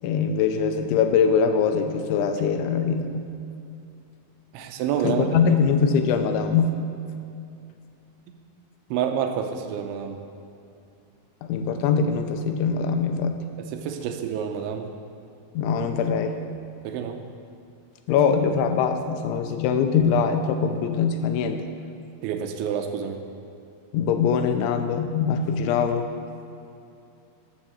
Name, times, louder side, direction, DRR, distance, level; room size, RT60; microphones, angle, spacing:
voice 1, 0.0-3.3 5.0-6.8 11.4-13.5 15.6-16.4 18.1-21.6 23.9-26.1, left 6 dB, 80° left, 7 dB, 3.0 m, -22 dB
voice 2, 4.5-5.4 8.9-10.2 13.6-14.9 16.8-17.2 22.2-23.2, right 8 dB, 85° right, 5 dB, 3.0 m, -28 dB
12.5 x 7.5 x 7.5 m, 2.6 s
omnidirectional pair, 5.5 m